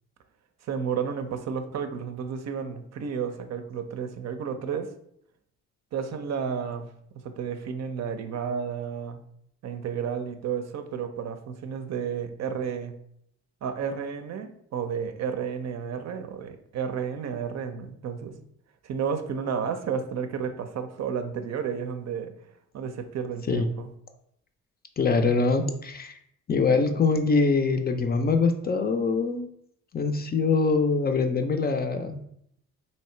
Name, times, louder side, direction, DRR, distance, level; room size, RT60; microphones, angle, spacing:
voice 1, 0.6-4.9 5.9-6.9 7.2-9.2 9.6-12.9 13.6-18.3 18.8-22.3 22.7-23.9, right 7 dB, 60° right, 8 dB, 0.6 m, -32 dB
voice 2, 25.0-26.2 26.5-29.5 29.9-32.2, left 4 dB, 30° left, 6 dB, 0.5 m, -24 dB
3.2 x 2.8 x 4.3 m, 0.71 s
cardioid pair, 90°, 30 cm